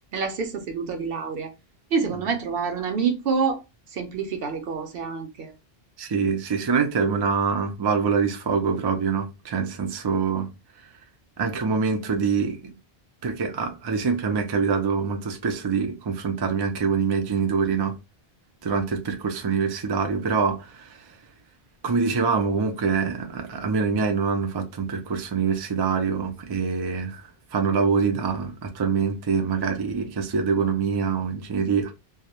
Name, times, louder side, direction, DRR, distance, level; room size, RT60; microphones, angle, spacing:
voice 1, 0.1-1.5 1.9-3.6 3.9-5.5, right 5 dB, 70° right, 0.8 m, -27 dB
voice 2, 6.0-10.5 11.4-12.7 13.2-18.0 18.6-21.0 21.8-27.2 27.5-31.9, right 5 dB, 45° right, 0.3 m, -25 dB
2.3 x 2.0 x 2.8 m
omnidirectional pair, 1.0 m